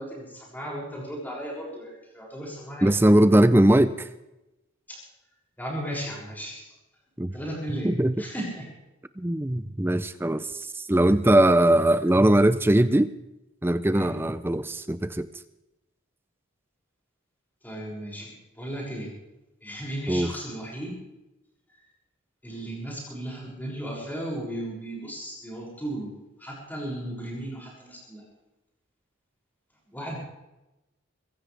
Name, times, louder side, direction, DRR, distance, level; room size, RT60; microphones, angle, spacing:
voice 1, 0.0-3.2 4.9-5.0 5.6-6.7 7.3-8.6 13.9-14.2 17.6-19.1 19.6-20.9 22.4-26.1 26.4-28.2 29.9-30.2, right 1 dB, 10° left, -4 dB, 6.7 m, -35 dB
voice 2, 2.8-4.1 7.2-7.3 7.8-8.2 9.2-13.1 13.6-15.3 20.1-20.3, right 1 dB, 10° right, 13 dB, 0.5 m, -20 dB
23.5 x 16.0 x 3.5 m, 0.97 s
head